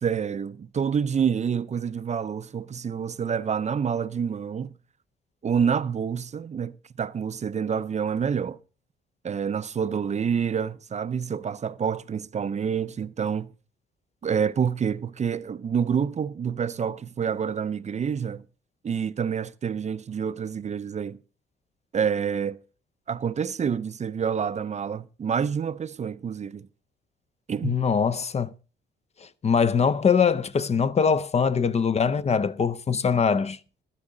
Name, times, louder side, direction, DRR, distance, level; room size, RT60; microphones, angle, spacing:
voice 1, 0.0-4.8 5.4-8.6 9.2-13.5 14.2-18.4 18.8-21.2 21.9-22.6 23.1-26.7 27.5-27.8, right 7 dB, 35° right, 0.5 m, -27 dB
voice 2, 27.6-28.5 29.2-33.6, left 6 dB, 35° left, 0.5 m, -23 dB
13.0 x 12.0 x 3.8 m
cardioid pair, 90°, 20 cm